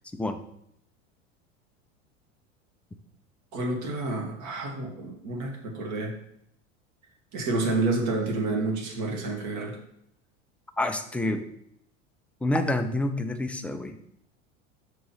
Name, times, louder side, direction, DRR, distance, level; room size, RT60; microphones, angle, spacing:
voice 1, 3.5-6.1 7.3-9.8, right 2 dB, 50° right, 1 dB, 1.8 m, -29 dB
voice 2, 10.8-11.4 12.4-13.9, left 1 dB, 5° left, 7 dB, 0.3 m, -27 dB
6.0 x 3.1 x 5.5 m, 0.72 s
hypercardioid pair, 85°, 37 cm